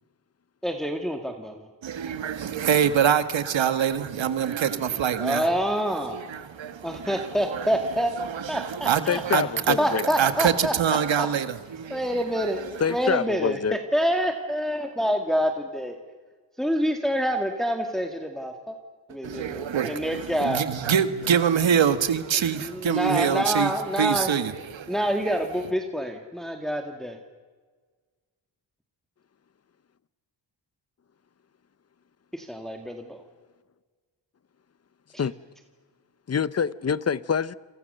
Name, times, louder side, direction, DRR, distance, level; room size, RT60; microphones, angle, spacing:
voice 1, 0.6-1.7 5.2-6.2 6.8-8.1 8.5-9.2 9.8-10.7 11.2-11.3 11.9-16.0 16.6-18.8 19.1-20.6 22.4-24.3 24.9-27.2 32.3-33.2, equal, ahead, 2.0 m, -27 dB
voice 2, 1.8-5.6 6.1-7.7 8.2-12.7 19.2-25.4, right 8 dB, 85° right, 1.8 m, -25 dB
voice 3, 9.1-10.0 12.8-13.8 35.2-35.3 36.3-37.5, left 6 dB, 35° left, 0.7 m, -26 dB
28.5 x 28.0 x 6.8 m
wide cardioid pair, 120°, 45 cm